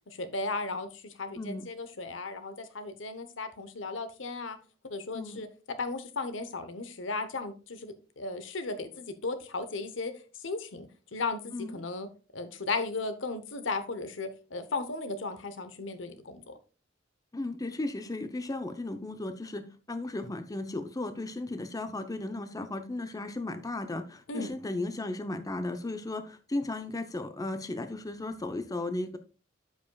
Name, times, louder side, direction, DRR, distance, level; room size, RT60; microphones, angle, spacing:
voice 1, 0.1-4.6 4.8-5.5 5.8-10.1 10.4-12.1 12.3-16.6 24.3-24.5, left 3 dB, 70° left, 10 dB, 0.9 m, -36 dB
voice 2, 1.4-1.7 5.1-5.4 11.5-11.8 17.3-29.2, left 2 dB, 20° left, 8 dB, 0.6 m, -35 dB
13.0 x 5.4 x 2.3 m, 0.34 s
head